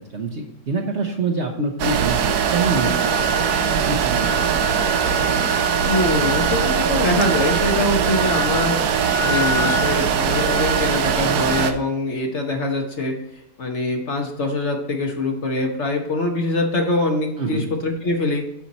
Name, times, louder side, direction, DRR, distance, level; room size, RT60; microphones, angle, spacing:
voice 1, 0.1-4.6 17.4-17.7, right 3 dB, 50° right, 3 dB, 1.0 m, -26 dB
sound 1, 1.8-11.7, right 6 dB, 70° right, 1.2 m, -20 dB
voice 2, 5.9-18.4, left 2 dB, 45° left, 3 dB, 1.2 m, -24 dB
10.5 x 4.5 x 4.1 m, 0.80 s
omnidirectional pair, 1.8 m